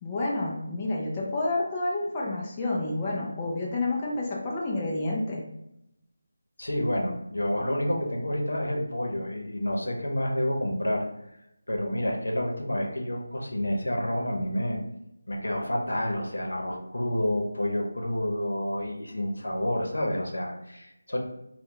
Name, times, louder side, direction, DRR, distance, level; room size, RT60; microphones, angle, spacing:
voice 1, 0.0-5.4, left 2 dB, 15° left, -5 dB, 0.4 m, -29 dB
voice 2, 6.6-11.0 11.7-14.8 15.3-21.2, left 1 dB, 90° left, 1 dB, 0.8 m, -29 dB
2.8 x 2.2 x 3.7 m, 0.84 s
figure-of-eight pair, 170°, 0 cm